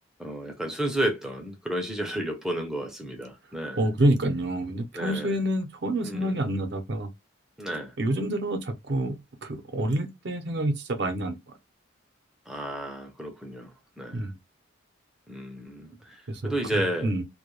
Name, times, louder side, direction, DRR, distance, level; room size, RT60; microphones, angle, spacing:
voice 1, 0.2-3.9 4.9-5.4 6.0-6.5 7.6-7.9 12.5-14.3 15.3-17.1, right 1 dB, ahead, 0.4 m, -32 dB
voice 2, 3.8-7.1 8.0-11.4 14.1-14.3 16.3-17.2, right 1 dB, 55° right, 0.5 m, -27 dB
2.2 x 2.1 x 2.9 m
head